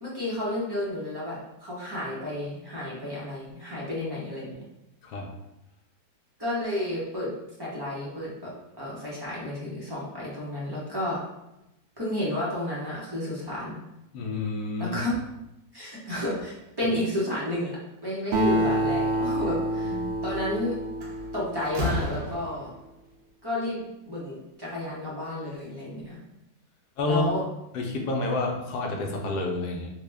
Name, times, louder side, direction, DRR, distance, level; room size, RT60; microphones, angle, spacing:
voice 1, 0.0-4.6 6.4-7.3 7.6-11.2 12.0-13.8 14.8-15.2 15.7-20.8 21.3-22.7 23.4-26.2 27.0-27.4, left 1 dB, 25° right, -7 dB, 0.5 m, -31 dB
voice 2, 14.1-15.0 19.8-20.1 27.0-27.3 27.7-29.9, left 2 dB, 75° left, 1 dB, 1.2 m, -29 dB
Acoustic guitar, 18.3-22.1, right 1 dB, 75° right, 1.2 m, -28 dB
Slam, 20.6-20.7 21.0-22.9, equal, 60° right, 0.9 m, -32 dB
3.8 x 2.1 x 3.3 m, 0.90 s
omnidirectional pair, 1.8 m